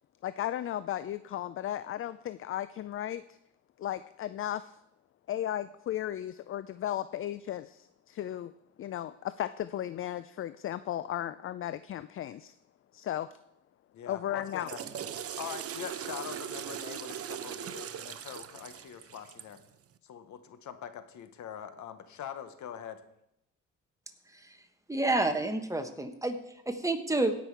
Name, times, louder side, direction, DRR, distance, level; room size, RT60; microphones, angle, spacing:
voice 1, 0.2-3.4 3.8-4.8 5.3-8.5 8.8-12.6 12.9-13.3 14.1-14.7, left 12 dB, 45° left, 14 dB, 0.4 m, -35 dB
voice 2, 13.9-14.8 15.4-19.6 20.0-23.0, left 9 dB, 70° left, 10 dB, 1.1 m, -43 dB
Water / Toilet flush, 14.4-19.6, right 9 dB, 50° right, 0.7 m, -40 dB
voice 3, 24.9-26.4 26.7-27.3, right 2 dB, 10° right, 7 dB, 1.2 m, -29 dB
16.5 x 6.0 x 4.7 m, 0.79 s
cardioid pair, 90°, 30 cm